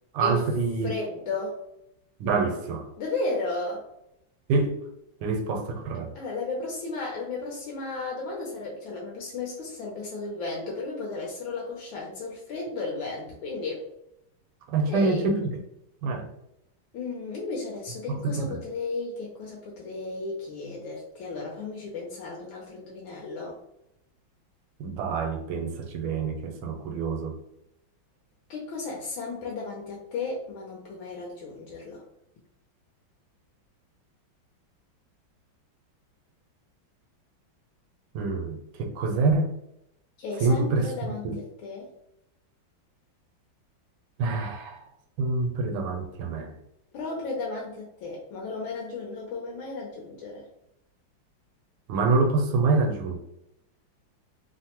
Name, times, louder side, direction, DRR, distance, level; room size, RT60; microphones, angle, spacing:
voice 1, 0.1-0.9 2.2-2.9 4.5-4.8 5.2-6.1 14.7-15.6 16.0-16.3 18.1-18.6 24.8-27.3 38.1-39.5 40.4-41.4 44.2-44.8 45.2-46.5 51.9-53.2, right 3 dB, 80° right, 4 dB, 1.4 m, -26 dB
voice 2, 0.8-1.6 3.0-3.8 6.1-13.8 14.9-15.3 16.9-23.6 28.5-32.0 40.2-41.9 46.9-50.5, left 3 dB, 80° left, -2 dB, 1.4 m, -34 dB
3.4 x 2.0 x 2.8 m, 0.80 s
omnidirectional pair, 2.2 m